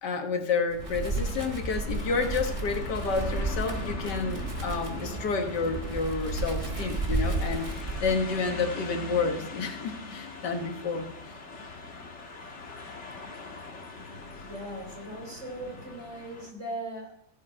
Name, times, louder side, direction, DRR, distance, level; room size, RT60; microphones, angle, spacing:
voice 1, 0.0-11.1, left 4 dB, 80° left, 1.9 m, -30 dB
Wind, 0.7-8.5, right 2 dB, 20° right, 1.3 m, -32 dB
sound 1, 0.8-16.5, left 3 dB, 45° left, 1.7 m, -42 dB
voice 2, 14.3-17.3, right 1 dB, 45° right, 3.7 m, -39 dB
16.0 x 7.3 x 4.3 m
omnidirectional pair, 1.8 m